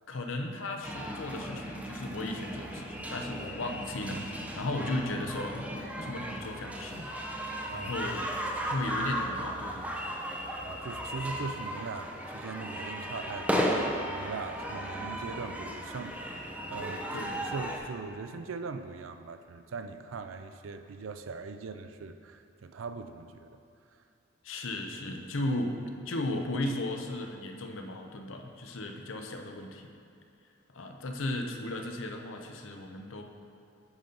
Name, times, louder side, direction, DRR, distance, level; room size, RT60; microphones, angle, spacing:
voice 1, 0.1-5.7 6.0-7.1 7.7-8.3 8.7-9.9 17.1-17.4 24.4-29.9 30.7-33.2, left 1 dB, 65° left, 4 dB, 0.7 m, -35 dB
sound 1, 0.8-17.8, equal, 5° right, 0.5 m, -35 dB
voice 2, 10.6-23.5, right 4 dB, 70° right, 8 dB, 0.4 m, -40 dB
9.7 x 5.3 x 3.9 m, 2.5 s
head